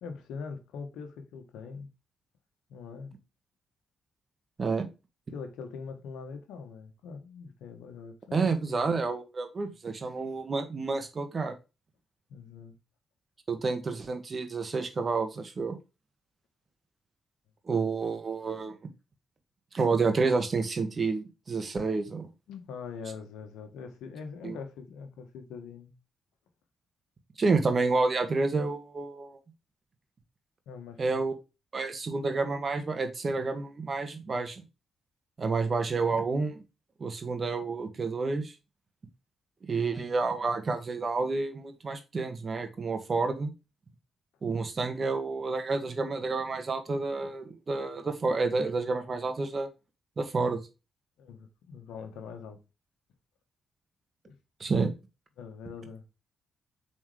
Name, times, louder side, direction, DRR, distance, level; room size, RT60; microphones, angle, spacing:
voice 1, 0.0-1.9 2.7-3.1 5.3-8.8 12.3-12.7 22.5-25.9 30.7-31.2 51.2-52.6 54.3-54.4 55.4-56.0, left 5 dB, 75° left, 1.3 m, -42 dB
voice 2, 8.3-11.5 13.5-15.8 17.7-18.9 19.7-22.3 24.4-24.6 27.4-29.4 31.0-31.3 31.7-34.6 35.4-36.6 37.0-38.5 39.6-43.5 44.4-49.7 50.2-50.6 54.6-54.9, right 4 dB, 45° right, 1.7 m, -29 dB
7.3 x 4.3 x 3.3 m
hypercardioid pair, 45°, 0 cm